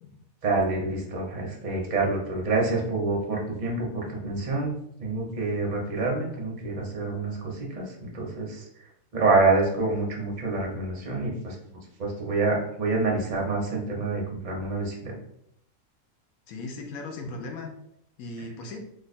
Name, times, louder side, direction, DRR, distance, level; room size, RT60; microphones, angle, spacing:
voice 1, 0.4-4.7 5.0-8.6 9.1-11.6 12.0-15.1, right 3 dB, 40° right, -1 dB, 0.8 m, -27 dB
voice 2, 16.5-17.7 18.2-18.8, left 2 dB, 85° left, 3 dB, 1.1 m, -37 dB
3.0 x 2.3 x 4.0 m, 0.74 s
omnidirectional pair, 1.4 m